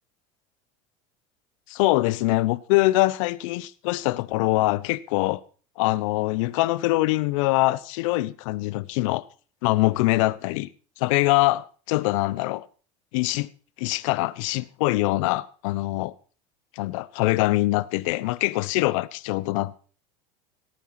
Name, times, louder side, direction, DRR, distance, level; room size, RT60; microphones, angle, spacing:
voice 1, 1.7-5.4 5.8-9.2 9.6-10.7 11.0-12.7 13.1-13.5 13.8-16.1 16.8-19.8, left 19 dB, 70° left, 1.1 m, -23 dB
18.0 x 9.2 x 6.0 m
supercardioid pair, 100°, 17 cm